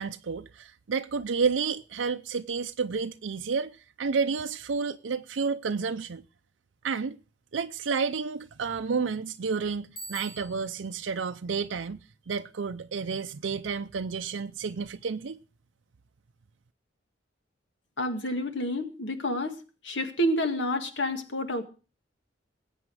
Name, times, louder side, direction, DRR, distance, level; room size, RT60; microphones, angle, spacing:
voice 1, 0.0-6.2 6.8-7.2 7.5-12.0 12.3-15.4, right 5 dB, 90° right, 0.5 m, -30 dB
Bicycle bell, 10.0-10.9, right 2 dB, 55° left, 4.1 m, -43 dB
voice 2, 18.0-19.6 19.8-21.7, equal, 75° left, 1.9 m, -29 dB
20.5 x 8.5 x 4.8 m
head